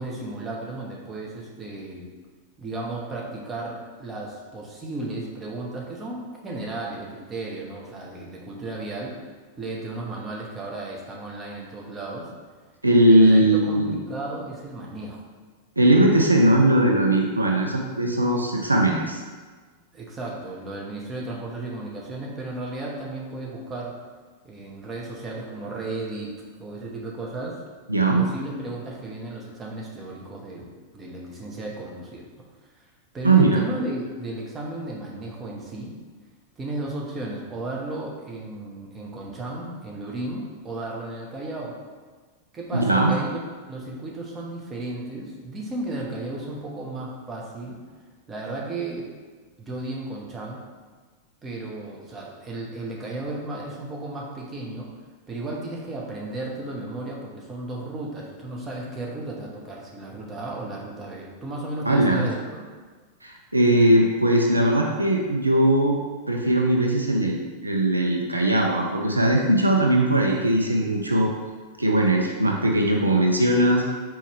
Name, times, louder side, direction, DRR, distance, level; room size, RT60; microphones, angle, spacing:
voice 1, 0.0-2.1 2.6-9.1 9.6-12.3 13.1-15.2 19.9-23.9 24.4-26.3 26.6-27.6 28.2-32.2 33.1-35.9 36.6-41.7 42.5-43.4 43.7-47.8 48.3-49.1 49.6-50.6 51.4-54.9 55.3-62.6, right 2 dB, 20° right, -3 dB, 0.9 m, -34 dB
voice 2, 12.8-14.0 15.8-19.2 27.9-28.3 33.2-33.6 42.7-43.1 61.9-62.3 63.2-66.0 66.3-67.4 67.6-71.3 71.8-73.9, right 1 dB, 80° right, 1 dB, 0.4 m, -19 dB
4.3 x 3.0 x 3.4 m, 1.4 s
figure-of-eight pair, 90°, 0 cm